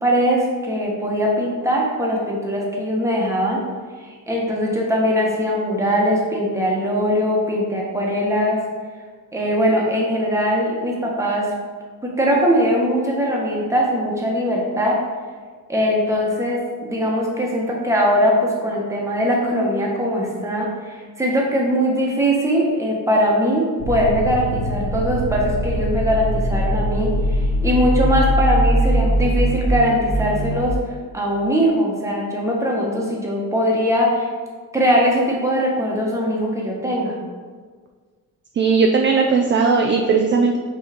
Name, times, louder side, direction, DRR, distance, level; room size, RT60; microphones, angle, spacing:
voice 1, 0.0-3.6 4.0-8.6 9.3-11.5 12.0-15.0 15.7-30.8 31.1-34.3 34.7-37.2, equal, 10° right, -3 dB, 1.3 m, -21 dB
sound 1, 23.8-30.7, equal, 75° left, 1.6 m, -21 dB
voice 2, 38.5-40.6, right 4 dB, 35° right, 2 dB, 0.4 m, -17 dB
5.4 x 4.0 x 5.1 m, 1.5 s
cardioid pair, 145°, 34 cm